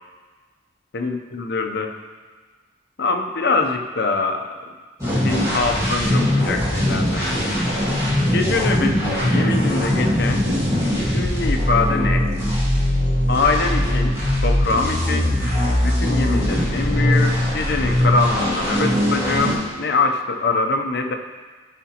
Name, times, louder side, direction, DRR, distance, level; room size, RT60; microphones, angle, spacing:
voice 1, 0.9-2.0 3.0-4.5 5.0-7.7 8.3-10.5 11.1-12.3 13.3-14.1 14.4-15.4 15.8-21.2, left 3 dB, 60° left, 5 dB, 0.6 m, -24 dB
sound 1, 5.0-19.6, left 1 dB, 15° right, 2.0 m, -20 dB
13.0 x 5.1 x 2.9 m, 1.4 s
head